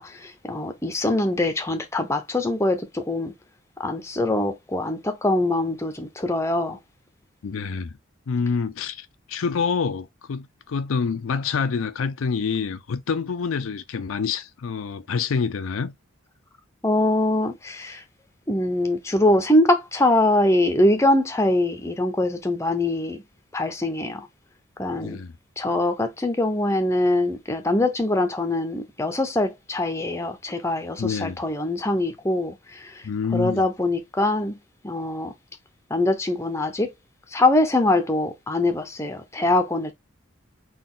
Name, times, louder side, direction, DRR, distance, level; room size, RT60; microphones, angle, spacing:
voice 1, 0.0-3.3 3.8-6.8 16.8-18.0 18.5-23.2 23.5-24.3 24.8-25.2 25.6-33.0 33.3-34.6 34.8-35.3 35.9-36.9 37.3-39.9, left 1 dB, 15° left, 0.6 m, -23 dB
voice 2, 7.4-7.9 8.3-16.0 25.0-25.3 31.0-31.4 33.0-33.6, left 5 dB, 75° left, 0.4 m, -27 dB
4.0 x 2.3 x 3.7 m
head